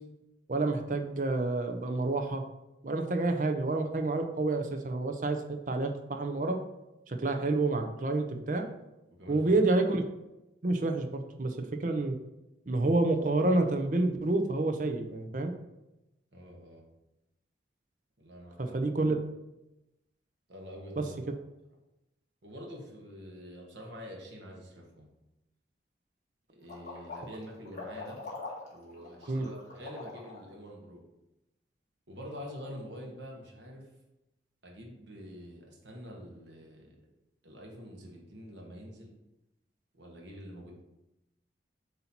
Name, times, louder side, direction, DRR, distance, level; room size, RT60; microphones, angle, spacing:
voice 1, 0.5-2.4 2.8-6.6 7.1-8.7 9.3-10.0 10.6-12.2 12.7-15.5 18.6-19.2 21.0-21.1 29.3-29.5, right 2 dB, 45° right, 5 dB, 0.6 m, -29 dB
voice 2, 9.1-9.4 16.3-16.9 18.2-18.8 20.5-21.2 22.4-25.1 26.5-28.2 28.7-31.0 32.1-33.9 34.6-36.9 37.4-39.1 39.9-40.8, equal, 85° right, -1 dB, 1.3 m, -46 dB
sound 1, 26.6-30.5, left 3 dB, 45° left, 1.5 m, -43 dB
7.9 x 2.8 x 4.3 m, 0.94 s
head